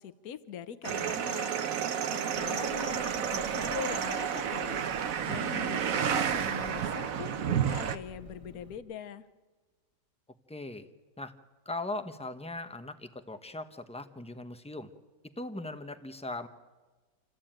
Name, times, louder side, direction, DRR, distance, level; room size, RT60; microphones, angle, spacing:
voice 1, 0.0-1.8 2.4-9.2, left 8 dB, 60° left, 12 dB, 1.3 m, -42 dB
sound 1, 0.8-8.0, right 8 dB, 60° right, 1.2 m, -31 dB
Engine, 2.3-8.8, equal, 20° left, 2.2 m, -52 dB
voice 2, 10.5-10.9 11.2-11.3 11.6-14.9 15.4-16.5, left 2 dB, 5° left, 8 dB, 0.7 m, -39 dB
28.0 x 14.0 x 8.9 m, 1.3 s
omnidirectional pair, 1.8 m